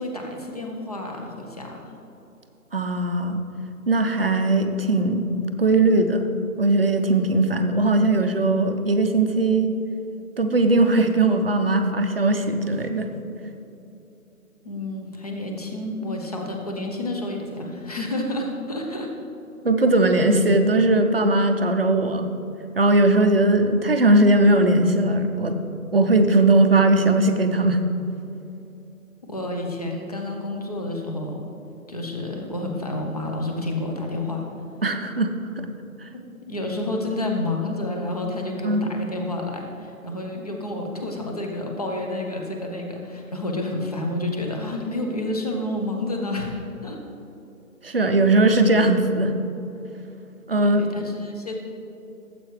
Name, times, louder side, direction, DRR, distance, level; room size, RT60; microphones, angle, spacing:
voice 1, 0.0-1.8 14.6-19.1 29.2-31.4 31.9-34.5 36.5-47.0 50.6-51.5, left 2 dB, 25° left, 1 dB, 0.8 m, -29 dB
voice 2, 2.7-3.4 3.9-5.2 5.6-6.3 6.6-9.7 10.4-13.1 19.6-22.3 22.8-25.6 25.9-27.8 34.8-35.7 36.0-36.1 38.6-38.9 47.8-49.3 50.5-50.8, right 2 dB, 40° right, 6 dB, 0.6 m, -19 dB
13.5 x 7.7 x 3.3 m, 2.8 s
figure-of-eight pair, 160°, 44 cm